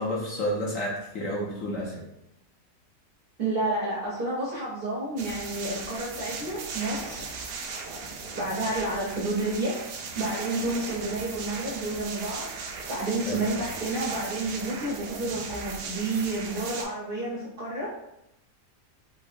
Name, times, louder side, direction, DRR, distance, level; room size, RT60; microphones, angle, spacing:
voice 1, 0.0-2.0 13.3-13.5, equal, 60° left, -4 dB, 1.1 m, -30 dB
voice 2, 3.4-7.2 8.3-9.8 10.1-12.5 12.9-17.9, right 2 dB, 50° right, -6 dB, 0.6 m, -30 dB
sound 1, 5.2-16.8, right 4 dB, 90° right, 1.2 m, -37 dB
3.7 x 2.7 x 2.4 m, 0.86 s
omnidirectional pair, 1.7 m